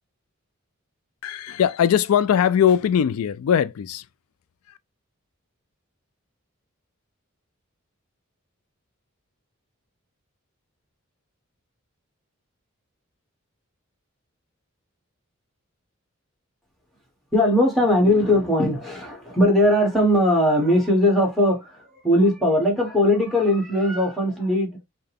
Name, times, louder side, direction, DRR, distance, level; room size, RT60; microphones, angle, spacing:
voice 1, 1.2-4.0, left 8 dB, 85° left, 0.3 m, -20 dB
voice 2, 17.3-24.8, left 1 dB, ahead, 1.4 m, -19 dB
5.7 x 2.2 x 3.4 m
head